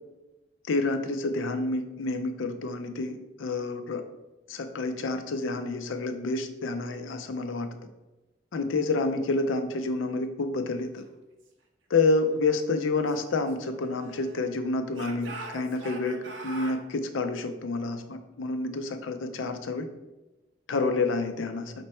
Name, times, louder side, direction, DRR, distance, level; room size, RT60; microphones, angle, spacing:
voice 1, 0.7-4.0 4.5-7.7 8.5-11.0 11.9-16.2 16.4-19.9 20.7-21.7, left 3 dB, 90° left, 8 dB, 0.5 m, -28 dB
Speech / Shout, 12.9-14.5 14.9-16.8, right 2 dB, 80° right, 0.6 m, -42 dB
5.2 x 2.2 x 4.1 m, 1.1 s
head